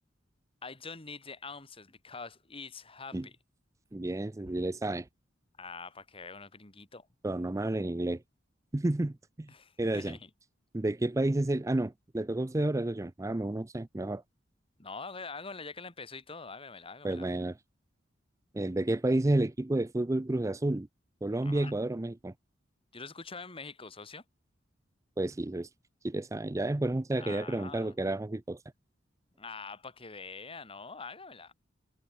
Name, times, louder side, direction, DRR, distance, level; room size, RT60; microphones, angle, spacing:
voice 1, 0.6-3.4 5.6-7.1 9.5-10.3 14.8-17.3 21.4-21.7 22.9-24.2 27.2-27.9 29.4-31.5, left 4 dB, 30° left, 2.6 m, -44 dB
voice 2, 3.9-5.1 7.2-8.2 8.7-9.5 9.8-10.2 10.7-14.2 17.0-17.6 18.5-20.9 21.2-22.3 25.2-25.7 26.0-28.6, right 1 dB, 15° right, 0.5 m, -30 dB
head